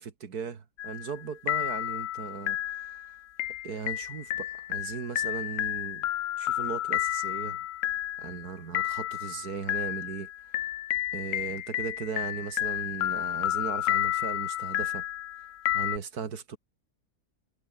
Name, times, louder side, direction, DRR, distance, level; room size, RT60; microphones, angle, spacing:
voice 1, 0.0-3.0 3.6-6.1 6.4-7.6 8.2-10.3 11.1-15.0 15.7-16.6, right 6 dB, 70° right, 2.3 m, -37 dB
sound 1, 0.8-1.2 1.5-16.0, left 13 dB, 65° left, 0.8 m, -31 dB
omnidirectional pair, 1.7 m